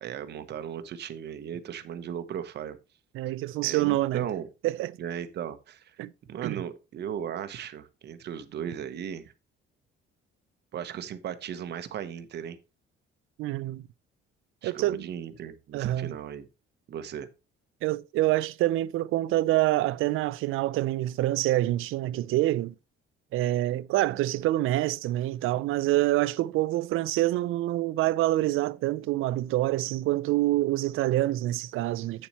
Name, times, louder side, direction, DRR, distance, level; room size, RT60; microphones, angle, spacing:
voice 1, 0.0-2.8 3.6-4.5 5.0-6.0 6.3-9.3 10.7-12.6 14.6-16.5 16.9-17.3, right 9 dB, 50° right, 1.1 m, -36 dB
voice 2, 3.1-4.3 4.6-4.9 6.0-6.1 6.4-6.6 13.4-13.9 14.6-15.1 15.7-16.1 17.8-22.7 23.3-32.3, right 16 dB, 75° right, 0.5 m, -26 dB
8.6 x 7.3 x 3.0 m
cardioid pair, 145°, 21 cm